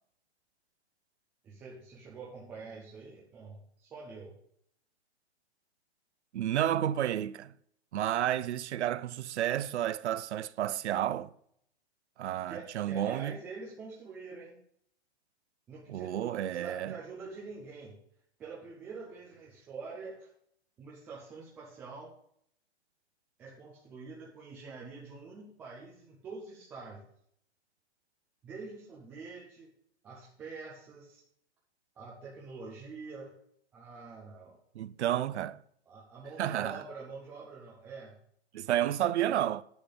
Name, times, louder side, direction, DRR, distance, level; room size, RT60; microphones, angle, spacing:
voice 1, 1.4-4.3 12.5-14.6 15.7-18.0 18.4-20.3 20.8-22.1 23.4-27.0 28.4-29.7 30.0-31.2 32.0-33.3 33.7-34.6 35.9-38.1, right 4 dB, 5° right, 0.3 m, -46 dB
voice 2, 6.3-7.5 7.9-11.3 12.2-13.4 15.9-17.0 34.7-35.6 36.4-36.8 38.5-39.6, right 11 dB, 75° right, 0.6 m, -31 dB
10.0 x 7.9 x 3.9 m
hypercardioid pair, 150°, 34 cm